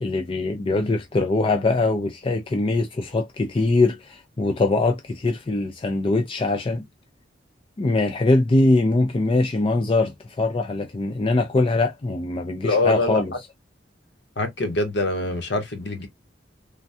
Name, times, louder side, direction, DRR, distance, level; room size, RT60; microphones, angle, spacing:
voice 1, 0.0-6.8 7.8-13.3, left 2 dB, 30° left, 0.4 m, -22 dB
voice 2, 12.6-13.2 14.4-16.1, left 2 dB, 65° left, 0.9 m, -24 dB
3.4 x 2.2 x 2.6 m
head